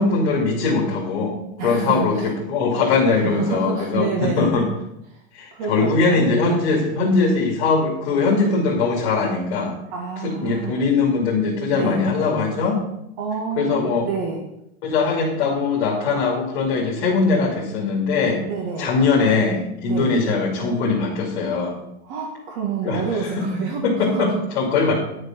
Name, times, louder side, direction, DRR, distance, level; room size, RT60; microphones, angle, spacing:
voice 1, 0.0-1.4 1.6-4.7 5.3-9.8 10.2-12.8 13.6-14.1 14.8-18.4 18.8-21.8 22.8-23.5 23.8-24.9, left 4 dB, 55° left, -2 dB, 2.6 m, -21 dB
voice 2, 1.6-2.3 3.1-4.5 5.1-5.2 5.5-6.2 9.9-10.8 11.7-12.0 13.2-14.4 18.4-19.0 19.8-20.1 22.0-24.3 24.7-24.9, right 5 dB, 40° right, 2 dB, 1.6 m, -28 dB
10.5 x 6.6 x 6.0 m, 0.81 s
supercardioid pair, 165°, 32 cm